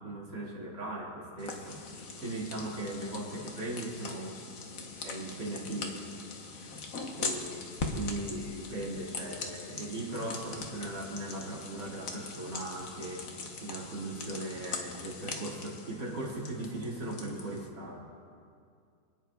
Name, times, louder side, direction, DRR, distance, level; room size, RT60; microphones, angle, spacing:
voice 1, 0.0-4.4 4.9-6.1 6.5-6.9 7.1-13.3 13.6-18.1, right 2 dB, 70° right, -3 dB, 2.7 m, -39 dB
sound 1, 1.4-17.7, left 3 dB, 55° left, 1.3 m, -41 dB
28.5 x 9.7 x 2.3 m, 2.3 s
omnidirectional pair, 2.0 m